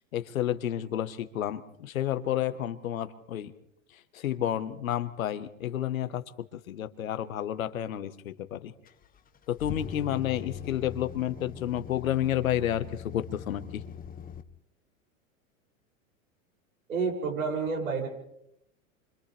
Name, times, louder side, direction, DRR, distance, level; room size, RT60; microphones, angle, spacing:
voice 1, 0.1-3.5 4.1-6.2 6.5-8.7 9.5-13.8, left 11 dB, 85° left, 10 dB, 1.6 m, -30 dB
sound 1, 8.9-14.4, left 8 dB, 20° left, 1.2 m, -41 dB
voice 2, 16.9-18.1, right 5 dB, 85° right, -1 dB, 7.4 m, -29 dB
29.0 x 25.5 x 3.5 m, 0.78 s
hypercardioid pair, 105°, 40 cm